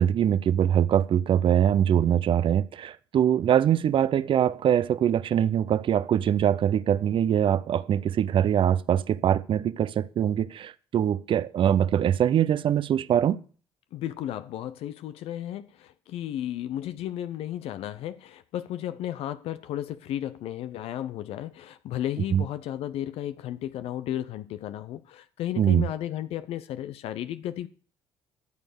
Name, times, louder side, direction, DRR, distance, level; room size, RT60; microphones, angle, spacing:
voice 1, 0.0-13.4 22.3-22.4 25.6-25.9, right 9 dB, 55° right, 0.6 m, -23 dB
voice 2, 13.9-27.7, left 12 dB, 75° left, 0.7 m, -34 dB
12.5 x 7.1 x 6.7 m
supercardioid pair, 60°, 10 cm